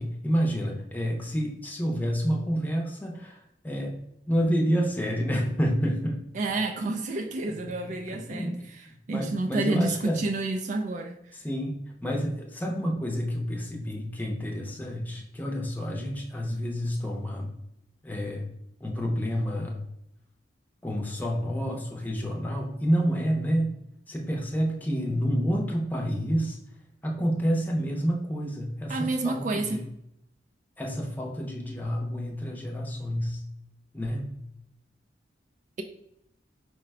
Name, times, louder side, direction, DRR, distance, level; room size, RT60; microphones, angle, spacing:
voice 1, 0.0-4.0 4.3-6.2 7.6-7.7 8.1-8.6 9.1-10.2 11.4-17.5 18.0-18.5 18.8-19.8 20.8-23.8 24.1-26.6 27.0-29.8 30.8-33.4 33.9-34.3, equal, 10° left, 0.6 m, -29 dB
voice 2, 6.3-11.4 28.9-29.8, right 2 dB, 45° right, 0.3 m, -30 dB
4.7 x 2.2 x 4.7 m
head